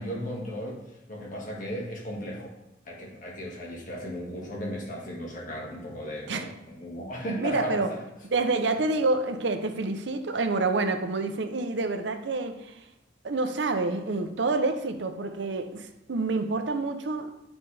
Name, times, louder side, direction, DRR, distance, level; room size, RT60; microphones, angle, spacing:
voice 1, 0.0-2.5 2.9-8.0, equal, 45° left, 1.6 m, -36 dB
voice 2, 7.4-7.9 8.3-12.8 13.2-17.5, right 3 dB, 65° right, 0.6 m, -28 dB
8.7 x 4.0 x 3.3 m
head